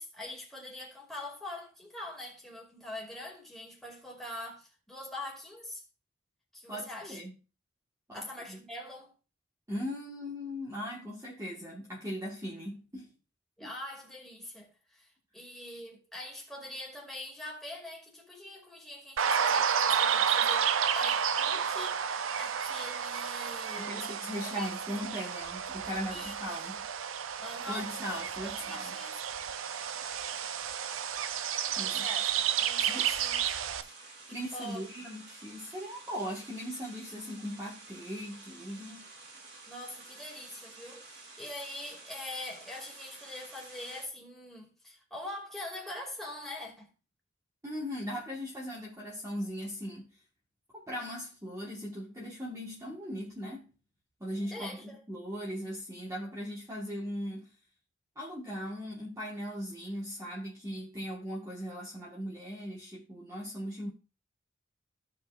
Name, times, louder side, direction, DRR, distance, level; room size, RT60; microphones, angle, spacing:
voice 1, 0.0-5.8 6.5-7.2 8.1-9.1 13.6-24.1 24.4-24.7 26.1-26.3 27.4-29.2 31.7-33.4 33.8-34.0 34.3-34.8 39.7-46.9 54.4-55.0, left 1 dB, ahead, 2.4 m, -43 dB
voice 2, 6.7-7.3 8.1-8.6 9.7-13.1 13.6-13.7 23.8-26.8 27.7-28.9 31.8-32.1 32.9-33.1 34.3-39.1 47.6-50.1 50.7-53.6 54.2-54.7 55.1-57.5 58.1-63.9, equal, 15° right, 1.5 m, -39 dB
sound 1, 19.2-33.8, right 8 dB, 85° right, 0.5 m, -31 dB
sound 2, 29.3-44.1, right 3 dB, 65° right, 2.2 m, -51 dB
15.5 x 5.2 x 2.5 m
head